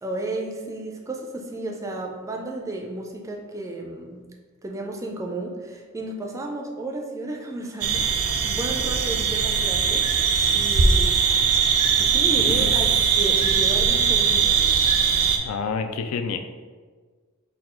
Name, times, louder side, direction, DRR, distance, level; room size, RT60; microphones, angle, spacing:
voice 1, 0.0-4.2 4.6-11.2 12.0-12.9 13.2-14.7, right 2 dB, 15° right, 0 dB, 0.4 m, -33 dB
sound 1, 7.8-15.4, right 6 dB, 85° right, 0.5 m, -20 dB
voice 2, 12.4-12.9 15.4-16.4, left 5 dB, 75° left, 8 dB, 0.4 m, -29 dB
4.2 x 2.3 x 4.3 m, 1.5 s
head